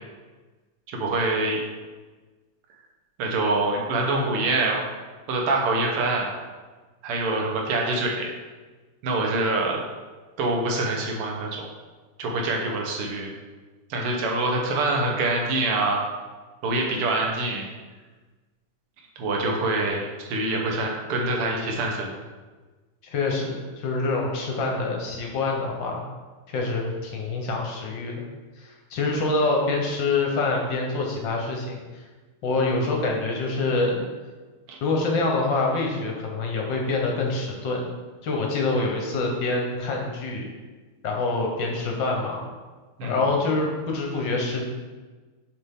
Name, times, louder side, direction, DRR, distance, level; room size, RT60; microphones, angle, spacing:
voice 1, 0.9-1.6 3.2-4.8 5.3-6.3 7.0-8.3 9.0-9.8 10.4-11.7 12.2-13.3 13.9-16.0 16.6-17.7 19.2-22.1 34.7-34.8 43.0-43.2, right 2 dB, 85° right, 0 dB, 1.9 m, -25 dB
voice 2, 23.1-26.0 26.5-28.2 28.6-32.0 32.4-34.0 34.8-37.8 38.2-40.4 41.0-42.4 43.0-44.6, left 3 dB, 65° left, 0 dB, 1.5 m, -26 dB
7.0 x 4.3 x 3.6 m, 1.3 s
omnidirectional pair, 2.4 m